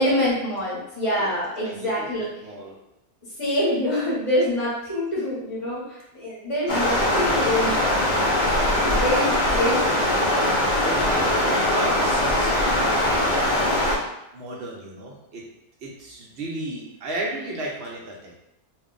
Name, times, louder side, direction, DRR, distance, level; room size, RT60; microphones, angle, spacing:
voice 1, 0.0-2.3 3.4-8.4 8.9-10.5, left 1 dB, 25° left, -9 dB, 0.7 m, -26 dB
voice 2, 1.6-2.8 10.8-13.7 14.3-15.5 15.8-18.4, right 1 dB, 60° right, -2 dB, 0.7 m, -34 dB
Stream, 6.7-14.0, left 1 dB, 75° left, 0.4 m, -21 dB
2.6 x 2.2 x 3.7 m, 0.85 s
omnidirectional pair, 1.6 m